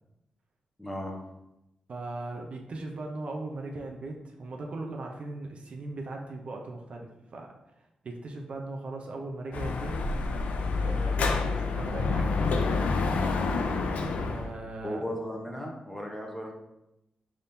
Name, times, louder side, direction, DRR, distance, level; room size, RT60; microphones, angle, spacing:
voice 1, 0.8-1.2 14.8-16.5, equal, 10° left, 0 dB, 0.8 m, -36 dB
voice 2, 1.9-7.5 7.8-10.0 10.7-13.0 14.2-15.2, right 2 dB, 55° right, 2 dB, 0.6 m, -39 dB
Dog / Motorcycle, 9.5-14.5, left 4 dB, 85° left, 0.4 m, -28 dB
4.1 x 3.5 x 2.7 m, 0.89 s
cardioid pair, 90°, 2 cm